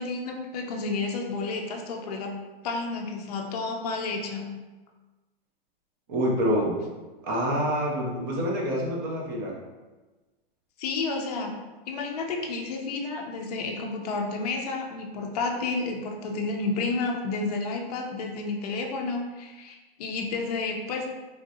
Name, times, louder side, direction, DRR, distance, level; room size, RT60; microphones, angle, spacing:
voice 1, 0.0-2.3 2.6-4.5 10.8-11.5 11.9-21.1, left 3 dB, 45° left, 1 dB, 0.5 m, -31 dB
voice 2, 6.1-6.8 7.2-9.6, equal, 25° right, -2 dB, 0.4 m, -26 dB
3.1 x 2.5 x 2.6 m, 1.2 s
hypercardioid pair, 165°, 29 cm